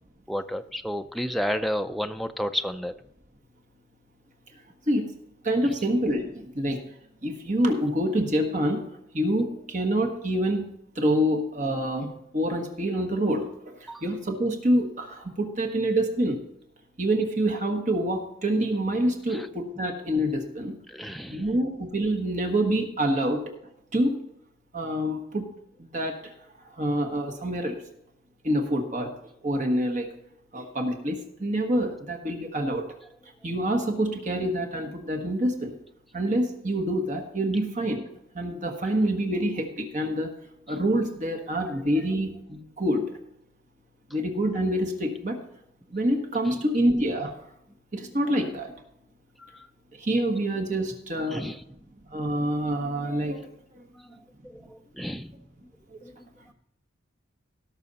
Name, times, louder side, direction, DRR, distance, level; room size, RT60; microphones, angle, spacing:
voice 1, 0.3-2.9 5.6-5.8 13.9-14.0 19.3-19.5 20.9-21.5 46.5-46.6 49.4-49.7 51.2-51.6 53.9-55.3 56.0-56.5, equal, ahead, 7 dB, 0.4 m, -32 dB
voice 2, 5.4-6.8 7.2-8.9 9.1-10.7 11.0-13.4 13.8-16.4 17.0-20.8 21.3-23.4 23.9-24.2 24.7-25.5 25.8-26.2 26.8-27.8 28.4-29.1 29.4-30.1 30.5-32.8 33.4-35.7 36.1-38.0 38.3-40.3 40.7-43.1 44.1-45.4 45.9-47.3 47.9-48.7 50.0-51.4 52.1-53.4, right 1 dB, 40° right, 3 dB, 1.3 m, -26 dB
17.5 x 6.2 x 4.1 m, 0.76 s
head